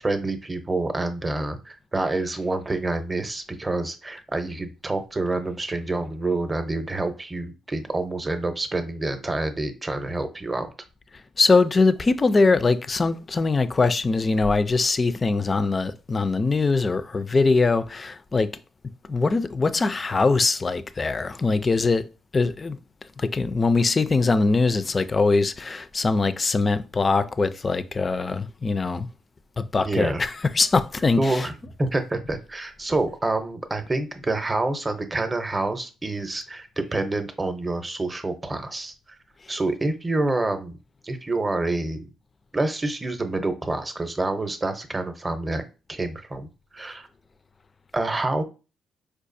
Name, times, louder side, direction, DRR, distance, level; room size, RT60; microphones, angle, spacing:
voice 1, 0.0-10.7 29.8-30.2 31.2-31.5 31.8-38.9 39.5-40.8 41.0-42.1 42.5-45.6 45.9-46.5 46.7-47.1 47.9-48.4, right 2 dB, 20° right, 0.6 m, -27 dB
voice 2, 11.4-18.5 19.1-22.0 22.3-22.8 23.2-29.1 29.6-31.5, left 3 dB, 30° left, 0.3 m, -22 dB
4.7 x 2.3 x 2.6 m
cardioid pair, 90°, 0 cm